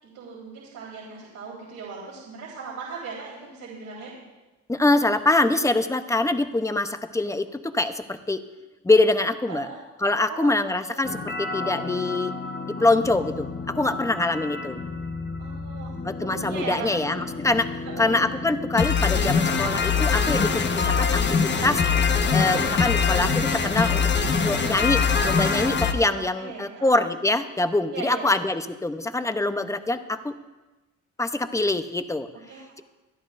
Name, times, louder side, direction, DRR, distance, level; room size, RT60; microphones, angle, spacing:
voice 1, 0.0-4.1 9.5-9.8 10.3-11.0 15.4-15.9 16.2-17.1 17.8-18.3 22.5-22.8 25.8-27.1 27.9-28.4 32.5-32.8, right 5 dB, 85° right, -5 dB, 3.9 m, -38 dB
voice 2, 4.7-8.4 8.8-9.7 10.0-12.3 12.7-14.8 16.0-17.7 18.0-21.8 22.3-30.3 31.2-32.3, left 2 dB, 10° left, 9 dB, 0.8 m, -24 dB
sound 1, 11.0-25.9, left 5 dB, 35° left, 1.1 m, -25 dB
25.5 x 10.5 x 2.6 m, 1.1 s
cardioid pair, 90°, 30 cm